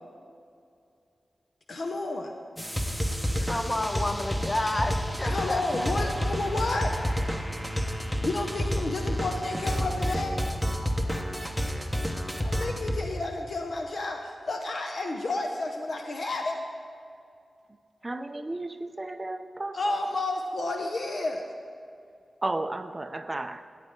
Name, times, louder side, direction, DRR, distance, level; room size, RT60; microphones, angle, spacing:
voice 1, 1.7-2.3 5.2-6.9 8.2-10.4 12.4-16.6 19.7-21.4, left 2 dB, 65° left, 0.8 m, -31 dB
sound 1, 2.6-13.0, equal, 5° left, 0.9 m, -30 dB
voice 2, 3.4-6.1, left 1 dB, 30° left, 0.6 m, -31 dB
voice 3, 18.0-19.9 22.4-23.6, right 2 dB, 25° right, 0.4 m, -33 dB
14.5 x 9.0 x 3.7 m
wide cardioid pair, 95°, 0 cm